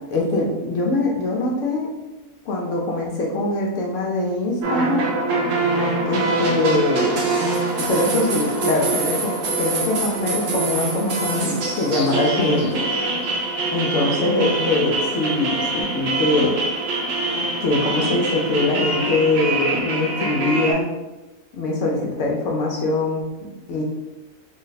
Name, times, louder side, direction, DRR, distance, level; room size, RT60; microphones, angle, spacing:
voice 1, 0.1-1.9 2.5-5.1 6.1-7.1 7.8-12.8 13.7-16.5 17.6-20.9 21.5-23.8, left 2 dB, 65° left, -1 dB, 0.8 m, -22 dB
sound 1, 4.6-20.7, right 2 dB, 65° right, 1.0 m, -24 dB
3.3 x 2.1 x 3.9 m, 1.1 s
omnidirectional pair, 1.5 m